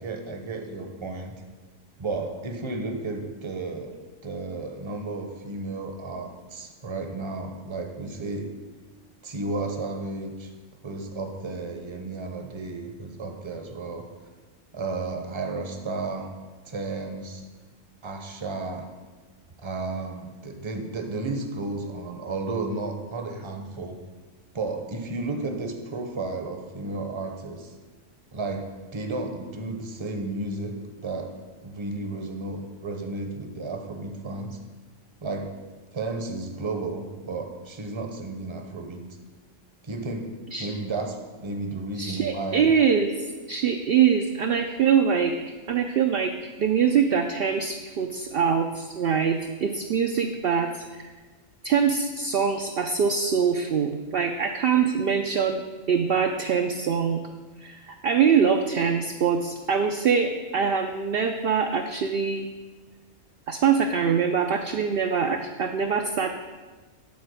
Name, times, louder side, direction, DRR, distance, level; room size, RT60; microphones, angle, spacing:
voice 1, 0.0-1.3 2.0-3.9 4.2-8.5 9.2-10.5 10.8-14.1 14.7-16.3 16.6-17.4 18.0-18.9 19.6-24.0 24.5-27.7 28.3-28.7 28.9-30.7 31.0-31.3 31.6-34.6 35.2-35.5 35.9-39.0 39.8-40.3 40.6-42.7, right 3 dB, 25° right, 4 dB, 0.7 m, -33 dB
voice 2, 42.0-43.1 43.5-45.3 45.7-46.3 46.6-51.1 51.6-55.6 55.9-57.2 57.6-62.5 63.5-66.4, right 6 dB, 60° right, 4 dB, 0.6 m, -23 dB
9.4 x 4.3 x 6.3 m, 1.3 s
omnidirectional pair, 1.3 m